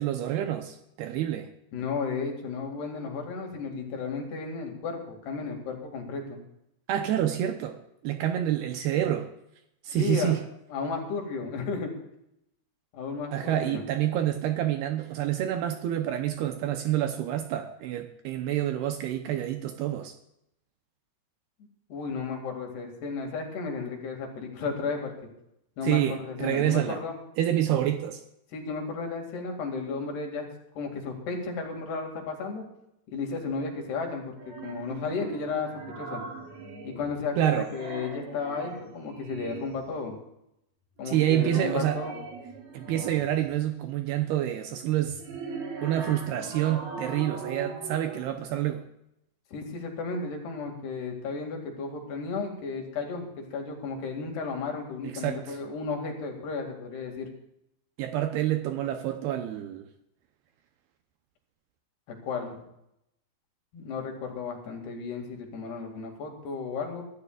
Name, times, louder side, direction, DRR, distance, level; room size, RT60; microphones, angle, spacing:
voice 1, 0.0-1.5 6.9-9.3 9.8-10.4 13.3-20.1 25.8-27.0 27.4-28.2 37.4-37.7 41.1-42.0 42.7-45.2 45.8-48.8 55.0-55.6 58.0-59.9, right 12 dB, 75° right, 6 dB, 2.6 m, -28 dB
voice 2, 1.7-6.4 9.9-10.4 10.7-11.9 12.9-13.8 21.9-25.1 25.8-27.2 28.5-30.5 30.8-32.6 33.1-35.7 36.0-36.2 36.8-40.2 41.0-42.2 49.5-57.3 62.2-62.6 63.7-67.0, left 4 dB, 65° left, 2 dB, 4.2 m, -33 dB
sound 1, 34.4-37.3 37.6-39.9 41.0-43.5 45.0-48.3, right 4 dB, 55° right, 3.8 m, -40 dB
24.0 x 13.5 x 2.4 m, 0.81 s
omnidirectional pair, 5.1 m